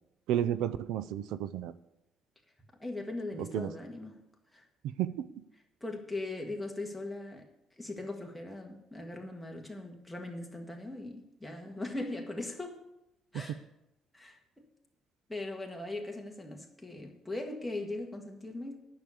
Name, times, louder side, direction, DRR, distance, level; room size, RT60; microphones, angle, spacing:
voice 1, 0.3-1.7 3.4-3.7 5.0-5.3 13.3-13.4, right 11 dB, 90° right, 14 dB, 0.5 m, -32 dB
voice 2, 2.8-4.2 4.5-4.6 5.8-7.5 7.8-12.8 13.3-13.6 14.1-14.7 15.3-18.7, left 2 dB, 5° left, 1 dB, 1.7 m, -39 dB
9.5 x 6.6 x 8.4 m, 0.87 s
cardioid pair, 130°, 0 cm